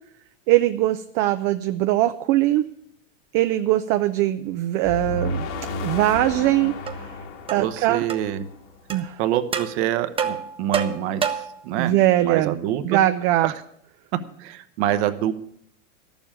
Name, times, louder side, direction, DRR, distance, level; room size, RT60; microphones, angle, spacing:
voice 1, 0.5-2.7 3.3-7.1 7.5-8.1 8.9-9.2 11.8-12.5 12.8-13.5, right 14 dB, 40° right, 9 dB, 0.5 m, -21 dB
sound 1, 4.8-8.9, left 2 dB, 55° left, 1.8 m, -32 dB
sound 2, 6.9-7.0 7.5-7.7 8.1-8.2 8.9-9.0 9.5-9.7 10.2-11.6, right 7 dB, 15° right, 0.9 m, -27 dB
voice 2, 7.6-8.4 9.2-11.9 12.2-13.0 13.4-13.5 14.4-15.3, right 11 dB, 55° right, 10 dB, 1.0 m, -26 dB
11.5 x 7.1 x 8.6 m, 0.73 s
supercardioid pair, 135°, 39 cm